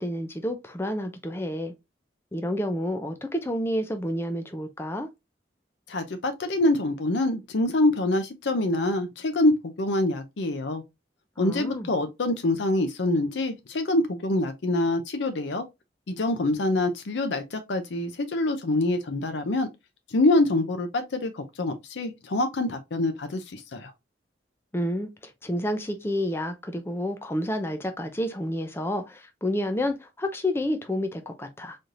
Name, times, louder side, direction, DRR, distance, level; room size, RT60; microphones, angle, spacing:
voice 1, 0.0-1.7 2.3-5.1 11.4-11.9 24.7-31.8, left 1 dB, 15° left, 0.4 m, -29 dB
voice 2, 5.9-10.8 11.4-15.6 16.1-19.7 20.1-23.9, left 2 dB, 85° left, 0.6 m, -25 dB
4.1 x 3.2 x 2.4 m
head